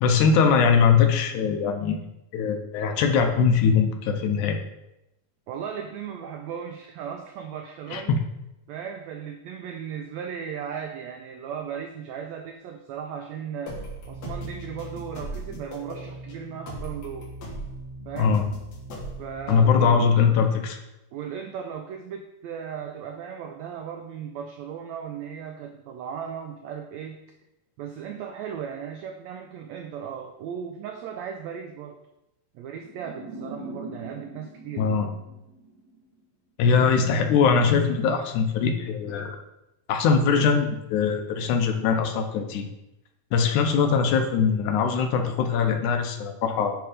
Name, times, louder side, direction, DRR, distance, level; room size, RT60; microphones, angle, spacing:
voice 1, 0.0-2.1 2.3-4.6 7.9-8.2 18.2-18.4 19.5-20.8 34.8-35.1 36.6-39.4 39.9-42.7 43.3-46.8, left 6 dB, 75° left, 4 dB, 2.1 m, -21 dB
voice 2, 5.5-8.2 8.7-13.8 14.1-17.3 18.0-18.4 19.2-20.0 21.1-27.2 27.8-32.0 32.5-34.9, right 8 dB, 90° right, 5 dB, 1.5 m, -36 dB
sound 1, 13.7-19.7, right 1 dB, 60° left, 2.7 m, -38 dB
sound 2, 32.8-36.0, right 2 dB, 70° right, 1.0 m, -41 dB
8.8 x 3.6 x 5.0 m, 0.90 s
omnidirectional pair, 3.8 m